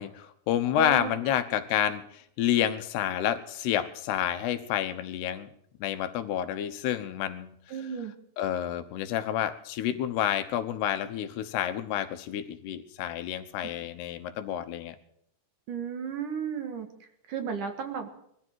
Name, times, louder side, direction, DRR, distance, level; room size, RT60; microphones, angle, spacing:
voice 1, 0.0-5.5 5.8-7.5 8.4-15.0, left 10 dB, 85° left, 10 dB, 3.2 m, -29 dB
voice 2, 0.8-1.1 7.7-8.1 15.7-16.9 17.3-18.1, right 6 dB, 60° right, 6 dB, 3.0 m, -33 dB
21.5 x 14.0 x 4.7 m, 0.70 s
omnidirectional pair, 4.6 m